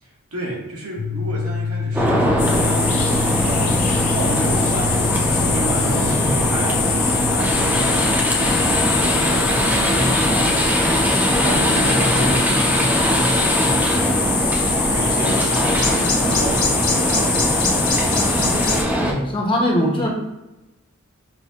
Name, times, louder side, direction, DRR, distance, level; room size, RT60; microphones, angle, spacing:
voice 1, 0.0-6.9 7.2-14.4 14.9-17.6, right 1 dB, 80° right, -3 dB, 1.2 m, -31 dB
sound 1, 1.0-12.8, left 5 dB, 65° left, 0.5 m, -29 dB
sound 2, 1.9-19.1, equal, 10° right, 0.5 m, -21 dB
sound 3, 2.4-18.8, left 5 dB, 90° left, 1.2 m, -23 dB
voice 2, 12.1-12.5 19.0-20.1, equal, 25° left, -2 dB, 0.7 m, -22 dB
5.7 x 2.6 x 2.7 m, 1.0 s
head